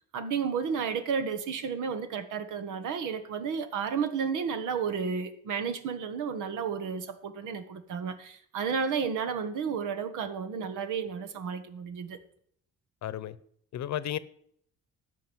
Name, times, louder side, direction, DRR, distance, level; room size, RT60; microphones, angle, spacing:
voice 1, 0.1-12.2, right 6 dB, 85° right, 1.4 m, -32 dB
voice 2, 13.0-13.4 13.7-14.2, left 11 dB, 65° left, 0.8 m, -33 dB
13.5 x 5.3 x 9.1 m
cardioid pair, 90°, 30 cm